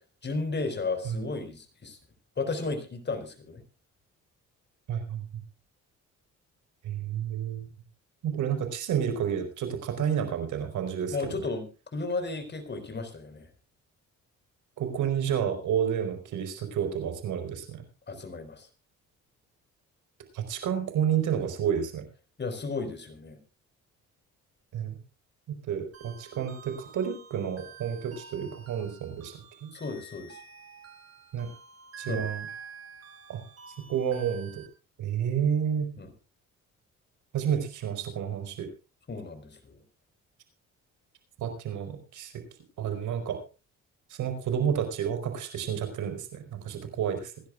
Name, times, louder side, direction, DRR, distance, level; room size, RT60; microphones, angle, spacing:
voice 1, 0.2-2.0 2.4-3.6 11.1-13.5 18.1-18.7 22.4-23.4 29.7-30.4 32.1-32.3 36.0-36.1 39.1-39.8, left 3 dB, 35° left, 7 dB, 4.6 m, -34 dB
voice 2, 4.9-5.2 6.8-7.7 8.2-11.3 14.8-17.8 20.3-22.0 24.7-25.0 25.5-29.7 31.3-31.5 32.0-32.5 33.3-33.4 33.9-34.6 35.0-35.9 37.3-38.7 41.4-42.3 42.8-43.4 44.1-47.3, right 8 dB, 80° right, 7 dB, 4.6 m, -30 dB
sound 1, 25.9-34.7, right 6 dB, 55° right, 7.8 m, -47 dB
26.0 x 11.5 x 2.4 m, 0.32 s
cardioid pair, 90°, 30 cm